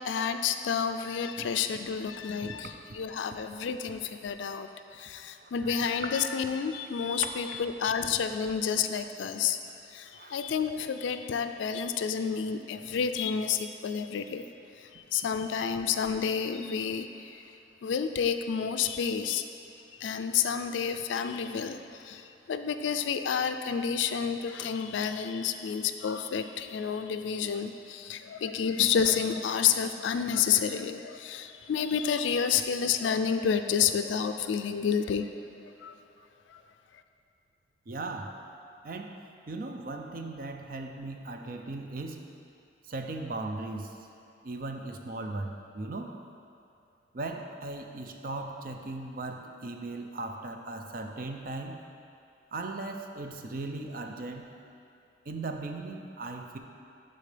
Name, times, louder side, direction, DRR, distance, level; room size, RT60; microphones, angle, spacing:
voice 1, 0.0-9.6 9.9-14.4 14.8-17.4 17.8-19.4 20.0-35.3 35.8-35.9 36.5-36.6, left 7 dB, 80° left, 9 dB, 0.3 m, -30 dB
voice 2, 5.4-5.9 7.2-7.6 10.1-10.4 37.9-38.4 38.8-42.2 42.9-43.9 44.4-46.2 47.1-51.8 52.5-54.5 55.3-56.6, right 2 dB, 45° right, 4 dB, 0.5 m, -38 dB
11.5 x 4.0 x 3.3 m, 2.6 s
head